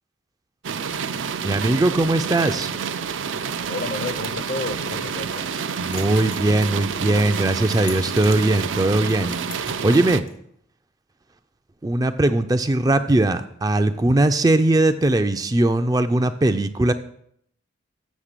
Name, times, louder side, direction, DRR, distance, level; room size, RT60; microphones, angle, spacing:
sound 1, 0.6-10.2, right 6 dB, 75° right, 0.5 m, -28 dB
voice 1, 1.4-2.7 5.8-9.4 9.6-10.2 11.8-16.9, right 2 dB, 20° right, 8 dB, 0.3 m, -20 dB
voice 2, 3.6-5.6, left 3 dB, 50° left, 12 dB, 0.6 m, -31 dB
sound 2, 5.9-10.3, left 5 dB, 85° left, 2.6 m, -43 dB
7.3 x 6.9 x 6.7 m, 0.70 s
head